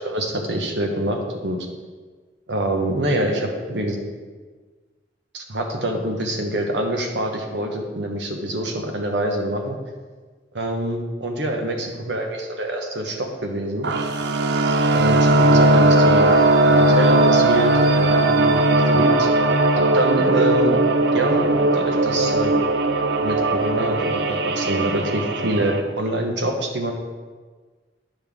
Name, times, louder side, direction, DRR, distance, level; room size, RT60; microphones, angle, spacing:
voice 1, 0.0-1.6 2.5-4.0 5.3-9.8 10.5-13.9 14.9-16.3 16.6-19.3 19.9-20.7 21.1-21.5 21.7-22.6 23.2-26.9, right 1 dB, 85° right, 3 dB, 1.1 m, -25 dB
sound 1, 13.8-25.8, right 2 dB, 70° right, 0.5 m, -18 dB
10.0 x 5.6 x 3.6 m, 1.4 s
head